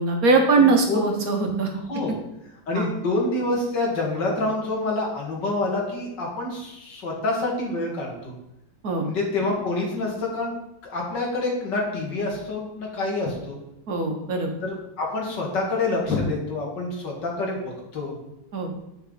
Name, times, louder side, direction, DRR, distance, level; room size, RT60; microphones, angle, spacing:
voice 1, 0.0-1.7 2.7-2.9 8.8-9.0 13.9-14.5 18.5-18.7, right 3 dB, 55° right, 3 dB, 1.6 m, -21 dB
voice 2, 0.6-1.0 1.7-2.1 2.7-8.3 9.0-10.5 10.8-13.6 14.6-18.1, left 2 dB, 80° left, -1 dB, 2.5 m, -27 dB
10.0 x 5.6 x 4.0 m, 0.87 s
omnidirectional pair, 1.9 m